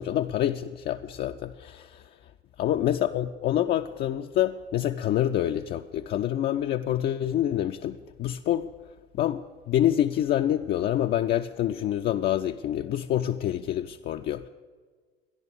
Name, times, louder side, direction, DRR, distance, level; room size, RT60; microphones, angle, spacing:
voice 1, 0.0-2.0 2.6-8.7 9.1-14.5, left 11 dB, 35° left, 5 dB, 0.4 m, -27 dB
12.5 x 10.5 x 6.9 m, 1.5 s
figure-of-eight pair, 65°, 30 cm